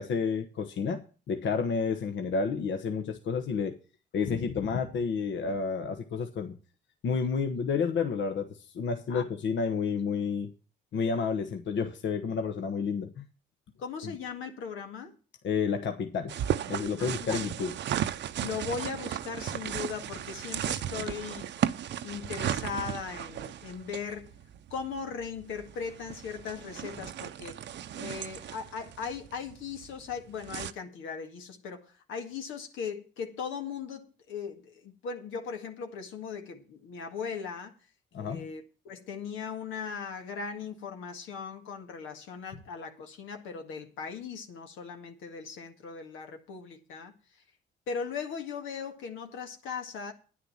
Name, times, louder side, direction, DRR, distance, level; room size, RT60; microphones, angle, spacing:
voice 1, 0.0-3.8 4.1-6.6 7.0-10.5 10.9-13.3 14.0-14.1 15.4-16.4 16.7-17.7 38.1-38.5, left 5 dB, 70° left, 1.3 m, -30 dB
voice 2, 13.8-15.2 17.0-17.4 18.4-21.5 22.0-24.4 24.7-27.6 27.9-37.7 38.2-47.1 47.9-50.1, left 6 dB, 90° left, 1.9 m, -38 dB
sound 1, 16.3-30.7, right 10 dB, 65° right, 0.8 m, -35 dB
10.5 x 9.9 x 5.7 m
cardioid pair, 90°, 20 cm